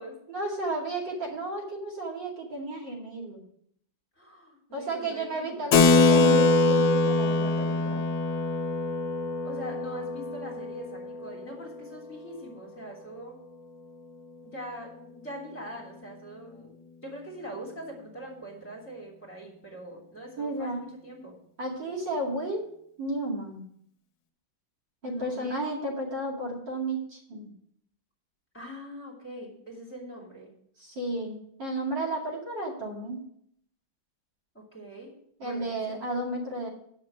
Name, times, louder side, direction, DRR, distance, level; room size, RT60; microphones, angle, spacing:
voice 1, 0.3-3.4 4.7-8.0 20.4-21.0 21.6-22.7 23.0-23.6 25.0-27.5 30.8-33.2 35.4-36.7, right 1 dB, 65° right, -2 dB, 3.1 m, -33 dB
voice 2, 4.2-5.7 9.4-13.4 14.5-16.7 17.0-21.3 25.0-25.5 28.5-30.5 34.5-35.1 35.4-36.0, equal, 5° left, -2 dB, 2.9 m, -42 dB
Keyboard (musical), 5.7-11.7, left 3 dB, 70° left, 1.5 m, -23 dB
9.7 x 5.9 x 7.5 m, 0.67 s
omnidirectional pair, 2.1 m